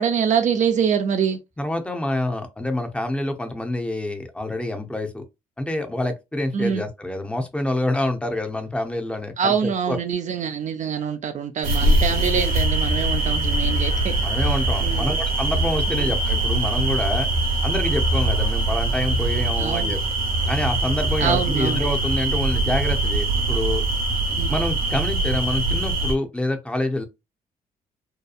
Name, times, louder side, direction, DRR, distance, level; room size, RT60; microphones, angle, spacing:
voice 1, 0.0-1.4 6.5-6.8 9.4-14.2 14.8-15.1 16.0-16.1 19.6-19.9 21.2-21.8 24.3-24.6, right 7 dB, 55° right, 0.5 m, -24 dB
voice 2, 1.6-5.2 5.6-10.0 14.2-17.3 17.6-20.0 20.5-23.8 24.5-27.1, left 1 dB, 5° left, 0.7 m, -27 dB
sound 1, 11.6-26.1, right 2 dB, 70° right, 1.0 m, -22 dB
2.8 x 2.2 x 2.4 m
supercardioid pair, 65°, 15 cm